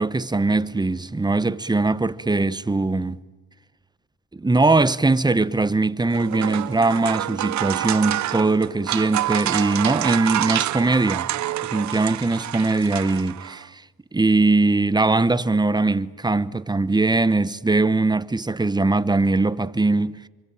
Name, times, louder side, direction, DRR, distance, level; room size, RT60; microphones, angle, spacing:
voice 1, 0.0-3.2 4.3-11.3 11.7-13.8 14.1-20.3, right 3 dB, 15° right, 1.0 m, -21 dB
sound 1, 6.0-13.6, right 13 dB, 70° right, 0.8 m, -27 dB
27.0 x 25.0 x 8.9 m
cardioid pair, 90°, 30 cm